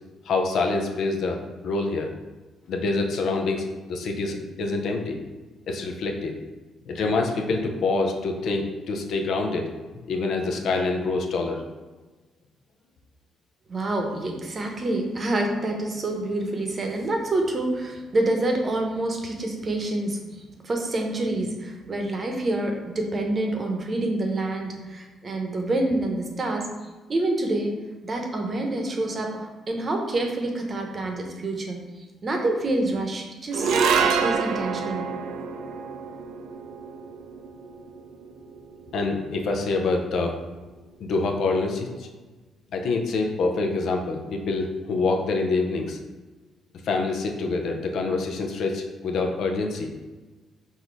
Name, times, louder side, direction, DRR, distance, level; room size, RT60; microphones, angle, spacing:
voice 1, 0.3-1.4 1.6-2.1 2.7-5.2 5.7-6.3 6.9-9.7 10.1-11.6 38.9-40.4 41.0-42.1 42.7-46.0 46.8-49.9, left 3 dB, 70° left, 2 dB, 0.6 m, -26 dB
voice 2, 13.7-20.2 20.6-26.7 27.1-27.7 28.0-33.8 34.2-35.1, right 2 dB, 35° right, 2 dB, 0.8 m, -27 dB
sound 1, 33.5-40.0, right 6 dB, 80° right, 0.4 m, -28 dB
4.0 x 2.7 x 4.6 m, 1.2 s
cardioid pair, 90°, 0 cm